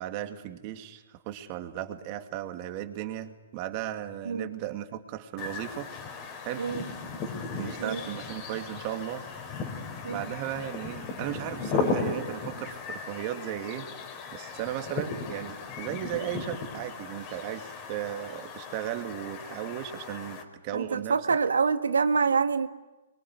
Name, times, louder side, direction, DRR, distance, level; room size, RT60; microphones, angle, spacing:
voice 1, 0.0-5.9 6.4-6.7 7.5-9.2 10.1-13.9 14.3-21.4, right 12 dB, 35° right, 6 dB, 2.5 m, -36 dB
sound 1, 5.4-20.4, left 4 dB, 30° left, 4.2 m, -36 dB
voice 2, 6.6-6.9 7.8-8.0 10.0-10.2 20.7-22.7, right 5 dB, 85° right, 10 dB, 1.6 m, -26 dB
25.5 x 23.5 x 9.7 m, 1.1 s
hypercardioid pair, 135°, 0 cm